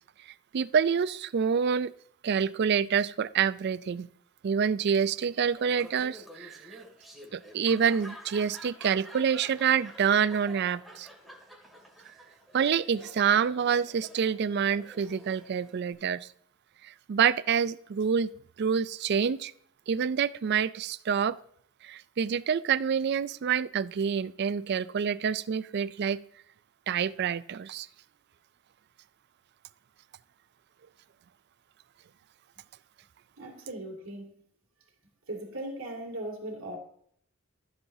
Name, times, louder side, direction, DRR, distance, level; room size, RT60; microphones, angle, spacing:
voice 1, 0.5-1.9 2.2-4.1 4.4-6.8 7.3-11.1 12.5-16.3 16.8-18.3 18.6-19.5 19.9-21.4 21.8-26.2 26.9-27.9, right 7 dB, 55° right, 17 dB, 0.4 m, -27 dB
Laughter, 5.6-15.9, equal, ahead, 2.3 m, -49 dB
voice 2, 33.4-34.4 35.3-36.8, right 1 dB, 75° right, -3 dB, 2.4 m, -38 dB
13.5 x 7.4 x 2.7 m, 0.64 s
head